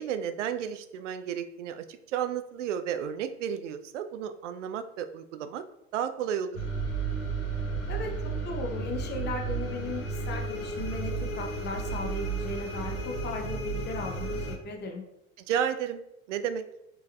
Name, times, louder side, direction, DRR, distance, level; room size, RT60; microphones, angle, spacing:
voice 1, 0.0-5.6 5.9-6.6 15.5-16.0 16.3-16.6, right 9 dB, 60° right, 10 dB, 0.5 m, -32 dB
sound 1, 6.5-14.5, right 3 dB, 90° left, 1.0 m, -33 dB
voice 2, 7.9-15.0, left 3 dB, 25° left, 2 dB, 0.7 m, -37 dB
4.5 x 3.2 x 2.2 m, 0.84 s
figure-of-eight pair, 80°, 42 cm